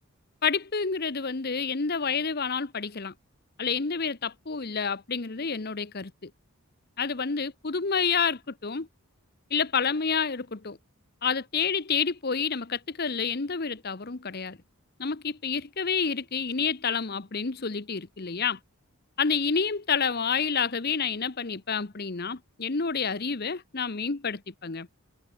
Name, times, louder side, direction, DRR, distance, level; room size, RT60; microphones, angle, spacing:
voice 1, 0.4-3.1 3.6-6.3 7.0-8.9 9.5-10.8 11.2-14.6 15.0-18.6 19.2-24.9, left 5 dB, 45° left, 0.9 m, -29 dB
head